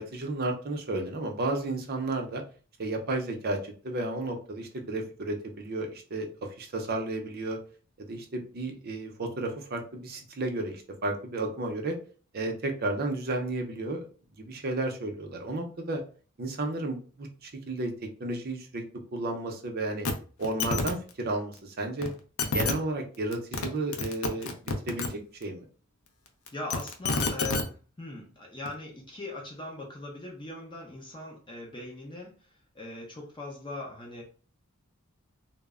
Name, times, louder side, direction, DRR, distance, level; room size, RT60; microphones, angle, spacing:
voice 1, 0.0-2.4 2.8-6.3 6.6-7.6 8.0-12.0 12.3-14.1 14.4-16.0 16.4-20.1 20.4-22.1 22.4-25.7, right 2 dB, 45° right, 3 dB, 0.5 m, -33 dB
sound 1, 20.0-20.1 20.4-20.9 22.0-22.1 22.4-22.7 23.3-23.7 23.9-25.1 26.5-27.6 28.7-28.8, left 3 dB, 70° left, 0.5 m, -28 dB
voice 2, 26.5-32.3 32.7-34.2, left 2 dB, 25° left, -1 dB, 0.5 m, -40 dB
2.0 x 2.0 x 3.5 m, 0.39 s
head